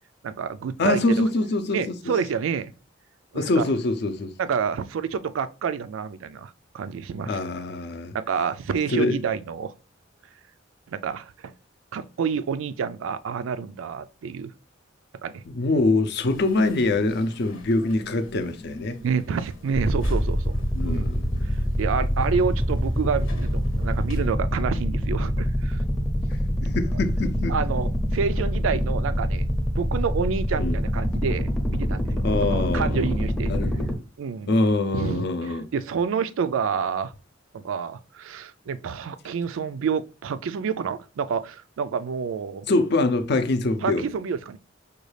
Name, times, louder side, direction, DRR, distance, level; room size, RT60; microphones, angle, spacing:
voice 1, 0.2-1.2 1.7-2.7 3.3-3.6 4.4-7.4 8.1-9.7 10.9-11.5 11.9-14.5 15.2-15.4 19.0-20.5 20.8-21.2 21.4-25.8 27.5-29.5 29.8-33.5 34.2-34.5 34.9-37.1 37.5-42.7 43.8-44.6, right 6 dB, 90° right, 0.4 m, -28 dB
voice 2, 0.8-2.1 3.3-4.3 7.3-8.1 8.9-9.2 15.5-19.0 20.7-21.6 26.6-27.6 30.6-30.8 32.2-33.0 33.4-33.9 34.5-35.7 42.7-44.0, left 2 dB, 60° left, 0.5 m, -24 dB
sound 1, 16.2-24.3, equal, 90° left, 0.9 m, -38 dB
sound 2, 19.7-33.9, equal, 5° left, 0.5 m, -25 dB
5.1 x 2.3 x 3.2 m
head